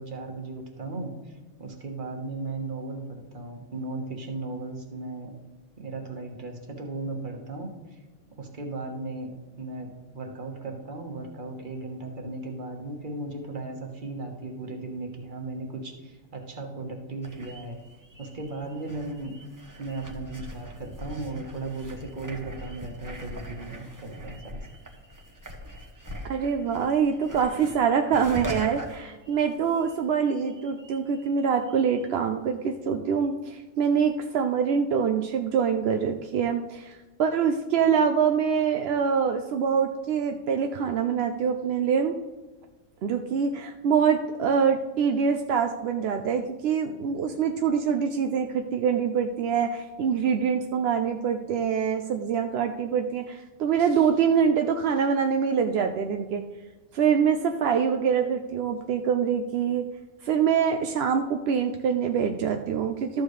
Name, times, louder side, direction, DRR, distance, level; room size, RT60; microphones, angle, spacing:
voice 1, 0.0-5.3 5.8-8.0 8.4-17.8 18.2-19.3 19.8-24.6, right 2 dB, 35° right, 2 dB, 1.3 m, -36 dB
sound 1, 17.2-30.0 30.2-32.1, right 1 dB, 15° right, 0.8 m, -42 dB
voice 2, 26.2-42.1 43.0-56.4 56.9-59.9 60.2-63.2, right 7 dB, 65° right, 5 dB, 0.6 m, -25 dB
13.0 x 7.2 x 3.2 m, 1.2 s
omnidirectional pair, 1.5 m